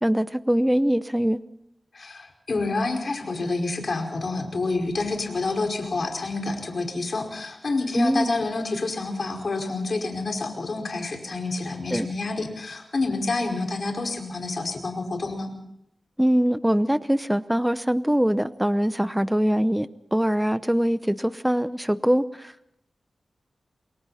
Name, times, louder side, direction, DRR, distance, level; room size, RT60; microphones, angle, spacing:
voice 1, 0.0-1.4 7.9-8.4 11.9-12.1 16.2-22.7, equal, 5° right, 14 dB, 0.8 m, -23 dB
voice 2, 1.9-15.5, left 3 dB, 60° left, 2 dB, 5.1 m, -28 dB
28.5 x 22.0 x 4.2 m, 0.78 s
wide cardioid pair, 80°, 0 cm